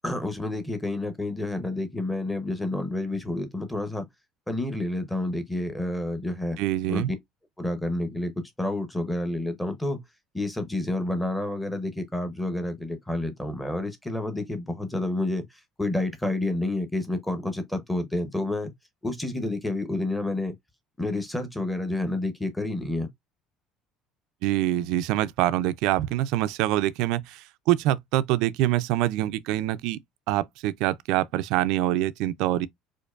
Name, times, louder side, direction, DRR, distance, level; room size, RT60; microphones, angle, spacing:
voice 1, 0.0-4.1 4.5-6.6 6.9-7.2 7.6-8.3 8.6-10.0 10.3-18.7 19.0-20.5 21.0-23.1, left 2 dB, 5° left, 0.7 m, -29 dB
voice 2, 6.6-7.1 24.4-30.0 30.3-32.7, right 14 dB, 65° right, 0.3 m, -25 dB
4.4 x 2.5 x 2.3 m
cardioid pair, 170°, 0 cm